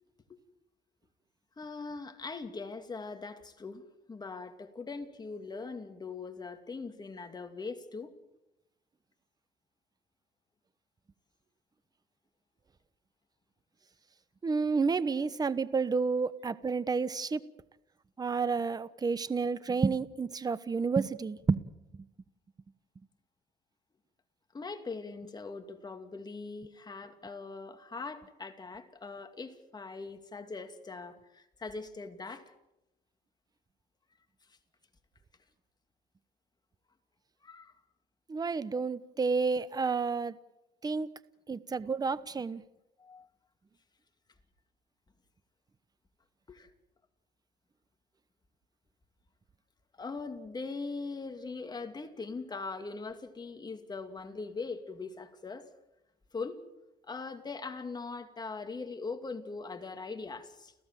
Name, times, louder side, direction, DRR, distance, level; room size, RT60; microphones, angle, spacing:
voice 1, 1.6-8.1 24.5-32.5 37.4-37.7 43.0-43.3 46.5-46.7 50.0-55.7 56.3-56.6 57.0-60.7, left 4 dB, 25° left, 7 dB, 2.5 m, -41 dB
voice 2, 14.4-17.4 18.2-21.6 38.3-40.3 40.8-41.1 41.5-42.6, right 4 dB, 25° right, 16 dB, 1.0 m, -30 dB
30.0 x 15.0 x 7.6 m, 0.91 s
cardioid pair, 110°, 17 cm